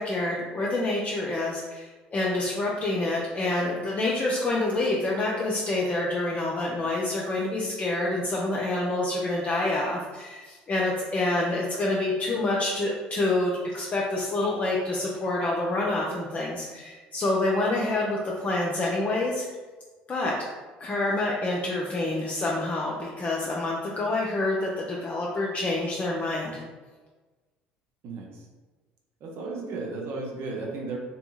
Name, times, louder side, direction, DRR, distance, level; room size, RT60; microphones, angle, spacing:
voice 1, 0.0-19.5 20.1-20.5 20.8-26.6, left 2 dB, 30° left, -4 dB, 0.4 m, -27 dB
voice 2, 28.0-28.5 29.2-31.0, right 3 dB, 50° right, -1 dB, 0.6 m, -34 dB
2.7 x 2.6 x 2.3 m, 1.3 s
figure-of-eight pair, 60°, 5 cm